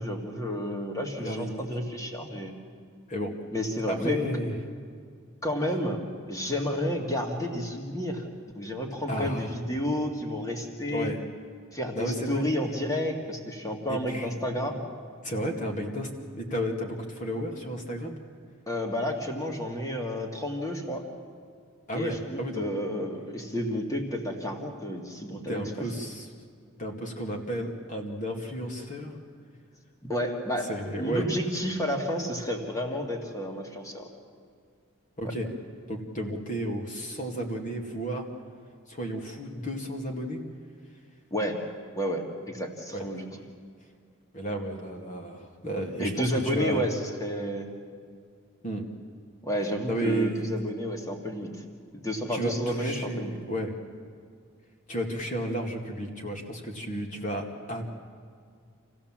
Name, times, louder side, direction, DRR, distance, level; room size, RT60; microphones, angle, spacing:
voice 1, 0.0-2.5 3.5-4.2 5.4-6.0 6.3-8.2 8.5-11.1 11.7-14.8 18.7-21.0 21.9-25.6 30.0-34.1 35.2-35.3 41.3-41.6 42.0-43.3 46.0-47.7 49.4-51.5 51.9-53.4, equal, 15° left, 2 dB, 2.1 m, -31 dB
voice 2, 1.2-1.7 3.1-3.3 3.9-4.6 9.1-9.5 10.9-11.2 11.9-12.5 13.9-14.4 15.2-18.2 21.9-22.6 25.5-26.3 26.8-29.2 30.7-31.3 35.2-35.5 35.9-38.3 38.9-40.4 42.9-43.0 43.3-43.4 44.3-47.1 48.6-48.8 49.9-50.5 52.3-53.8 54.9-57.8, equal, 35° left, 2 dB, 2.3 m, -32 dB
27.0 x 15.5 x 7.5 m, 2.1 s
head